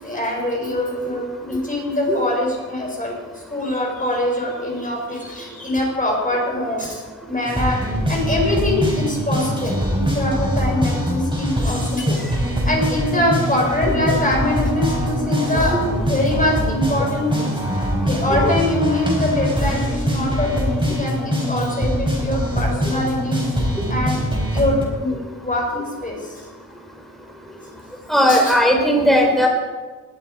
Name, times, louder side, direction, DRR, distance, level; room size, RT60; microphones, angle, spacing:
voice 1, 0.0-26.4 28.3-28.6, left 1 dB, 25° left, -1 dB, 4.9 m, -24 dB
sound 1, 7.5-24.8, equal, 15° right, 4.7 m, -23 dB
voice 2, 28.1-29.5, equal, ahead, 1 dB, 3.5 m, -16 dB
19.5 x 11.5 x 4.8 m, 1.4 s
wide cardioid pair, 110°, 32 cm